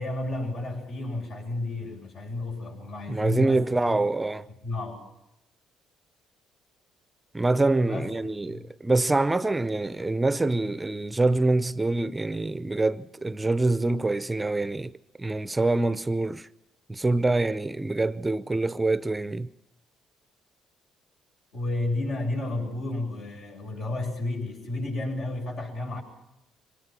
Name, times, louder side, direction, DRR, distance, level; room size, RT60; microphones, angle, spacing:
voice 1, 0.0-4.0 4.5-5.0 7.8-8.1 8.5-8.6 21.5-26.0, left 2 dB, 65° left, 7.8 m, -31 dB
voice 2, 3.1-4.5 7.3-14.9 15.2-16.5 16.9-19.5, right 2 dB, 15° right, 0.7 m, -25 dB
24.5 x 19.0 x 6.1 m
cardioid pair, 85°, 0 cm